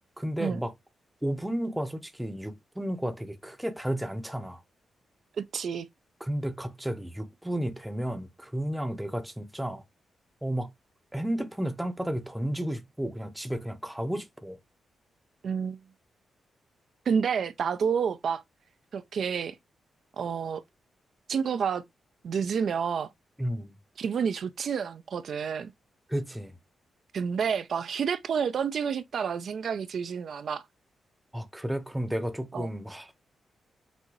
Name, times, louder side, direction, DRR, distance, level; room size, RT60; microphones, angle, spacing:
voice 1, 0.2-0.7 1.2-4.6 6.2-9.8 10.4-10.7 11.1-14.6 23.4-23.8 26.1-26.5 31.3-33.2, right 1 dB, 5° right, 0.7 m, -32 dB
voice 2, 5.4-5.9 15.4-15.8 17.1-18.4 18.9-19.6 20.1-20.6 21.3-21.8 22.2-23.1 24.0-25.7 27.1-30.7 32.5-32.7, right 6 dB, 65° right, 0.4 m, -29 dB
6.1 x 2.6 x 3.0 m
cardioid pair, 105°, 0 cm